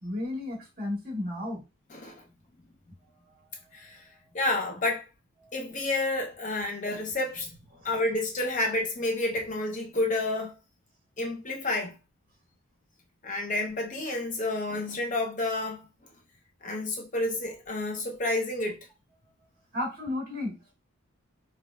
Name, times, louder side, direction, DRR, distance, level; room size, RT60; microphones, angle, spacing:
voice 1, 0.0-1.6 3.3-4.2 5.4-5.5 7.7-7.9 19.7-20.7, left 1 dB, 45° right, 1.5 m, -35 dB
voice 2, 1.9-2.2 3.7-4.0 4.3-5.1 5.5-7.5 7.8-10.5 11.2-12.0 13.2-15.9 16.6-18.9, left 2 dB, 35° left, 0.5 m, -30 dB
4.9 x 2.4 x 2.2 m
head